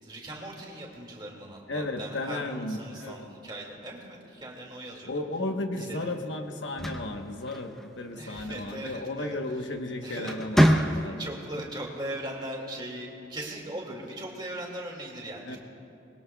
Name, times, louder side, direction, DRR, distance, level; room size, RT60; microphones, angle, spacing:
voice 1, 0.0-5.1 5.7-6.0 8.2-9.4 10.0-10.3 10.7-15.6, right 1 dB, 25° right, -1 dB, 2.2 m, -39 dB
voice 2, 1.7-3.3 5.0-11.2 11.6-11.7 15.4-15.6, left 2 dB, 80° left, 5 dB, 1.1 m, -34 dB
sound 1, 6.5-8.1 9.5-9.8 10.2-11.4, equal, ahead, 0.7 m, -25 dB
25.5 x 21.0 x 2.3 m, 2.7 s
head